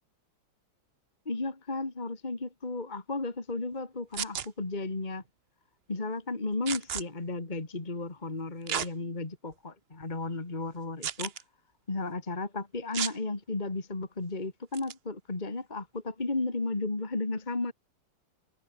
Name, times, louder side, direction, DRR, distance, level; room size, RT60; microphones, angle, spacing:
voice 1, 1.3-5.2 5.9-11.3 11.9-17.7, left 2 dB, 20° left, 2.5 m, -34 dB
sound 1, 4.1-4.5 6.7-7.0 8.7-8.9 9.5-9.6 11.0-11.4 12.9-13.2 14.7-14.9, right 8 dB, 65° right, 0.6 m, -33 dB
omnidirectional pair, 2.1 m